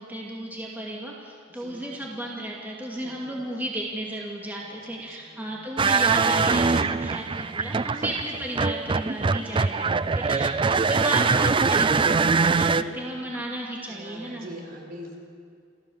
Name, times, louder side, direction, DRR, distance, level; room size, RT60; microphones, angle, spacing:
voice 1, 0.0-9.8 10.1-14.5, right 1 dB, 10° right, -3 dB, 2.3 m, -34 dB
voice 2, 1.5-2.0 3.0-3.7 4.6-5.7 7.3-7.4 7.8-8.0 9.5-10.7 12.5-13.3 13.9-15.2, equal, 50° right, 0 dB, 4.3 m, -44 dB
sound 1, 5.8-12.8, right 4 dB, 25° right, 0.4 m, -23 dB
28.5 x 14.0 x 7.1 m, 2.3 s
head